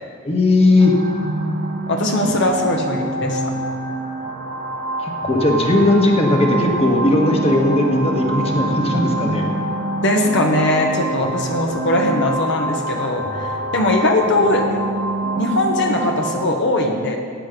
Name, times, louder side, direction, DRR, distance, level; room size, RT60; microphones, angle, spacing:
voice 1, 0.2-0.9 5.0-9.5, left 2 dB, 30° left, 1 dB, 1.5 m, -17 dB
sound 1, 0.8-16.5, right 2 dB, 50° right, 1.3 m, -25 dB
voice 2, 1.9-3.4 10.0-14.8 15.4-17.2, left 1 dB, 60° left, 2 dB, 1.2 m, -20 dB
16.5 x 9.5 x 5.2 m, 2.3 s
head